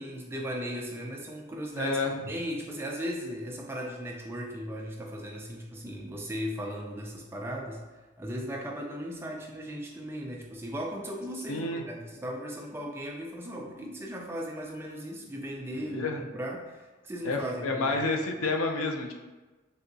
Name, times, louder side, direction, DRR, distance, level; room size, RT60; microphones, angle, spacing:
voice 1, 0.0-2.0 2.3-18.0, equal, 10° right, 0 dB, 0.3 m, -37 dB
voice 2, 1.8-2.1 11.5-11.8 15.9-16.2 17.2-19.1, left 3 dB, 85° left, 3 dB, 0.4 m, -29 dB
3.4 x 2.8 x 2.6 m, 1.2 s
head